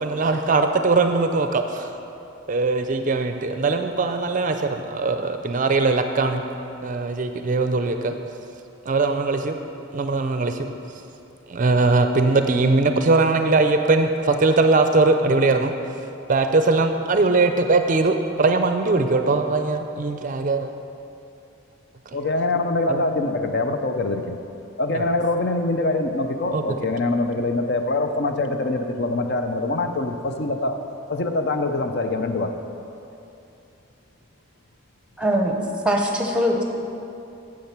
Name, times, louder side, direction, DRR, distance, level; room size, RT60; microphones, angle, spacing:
voice 1, 0.0-1.9 2.5-6.4 6.8-8.1 8.9-9.5 9.9-10.7 11.5-15.7 16.3-20.7 22.9-23.0 24.9-25.1 26.5-26.6, right 3 dB, 40° right, 6 dB, 0.4 m, -20 dB
voice 2, 22.1-24.4 24.8-30.8 31.1-32.5, left 2 dB, 50° left, 6 dB, 0.6 m, -24 dB
voice 3, 35.2-35.6 35.8-36.6, equal, 5° right, 1 dB, 0.8 m, -21 dB
8.7 x 7.7 x 5.9 m, 2.7 s
head